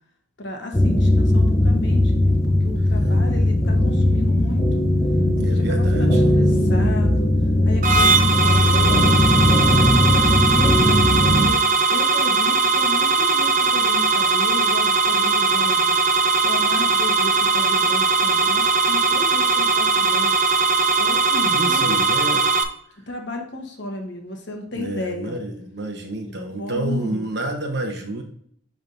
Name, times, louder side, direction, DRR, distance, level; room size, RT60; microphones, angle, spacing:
voice 1, 0.4-4.9 5.4-7.3 7.6-15.9 16.4-20.4 21.0-22.0 23.1-25.4 26.6-27.3, left 2 dB, 60° left, 2 dB, 1.1 m, -33 dB
sound 1, 0.7-11.5, left 1 dB, 15° left, 0.7 m, -18 dB
voice 2, 5.4-6.3 21.4-22.4 24.7-28.2, right 1 dB, 55° right, 3 dB, 1.1 m, -29 dB
sound 2, 7.8-22.6, right 4 dB, 40° right, 0.5 m, -19 dB
10.5 x 3.5 x 2.6 m, 0.64 s
head